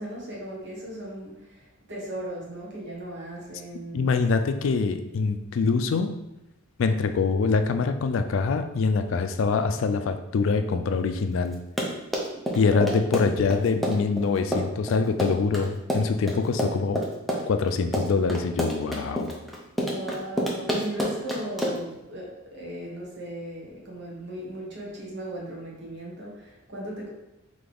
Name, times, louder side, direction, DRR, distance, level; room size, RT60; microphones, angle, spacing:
voice 1, 0.0-4.2 12.3-13.0 19.7-27.1, right 1 dB, 55° right, -4 dB, 1.3 m, -37 dB
voice 2, 3.9-6.1 6.8-11.6 12.5-17.0 17.5-19.3, left 4 dB, 65° left, 8 dB, 0.3 m, -24 dB
Run, 11.5-21.9, equal, ahead, 0.5 m, -28 dB
3.9 x 3.3 x 3.5 m, 0.92 s
head